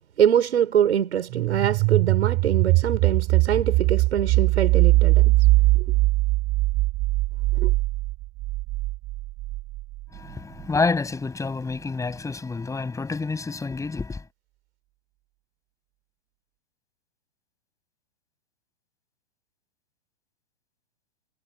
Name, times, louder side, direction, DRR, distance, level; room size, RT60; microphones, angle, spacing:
voice 1, 0.2-5.3 7.6-7.7, right 9 dB, 75° right, 5.2 m, -24 dB
sound 1, 1.3-10.0, right 20 dB, 30° right, 1.4 m, -21 dB
voice 2, 10.1-14.2, left 4 dB, 10° left, 6.7 m, -28 dB
hypercardioid pair, 125°, 34 cm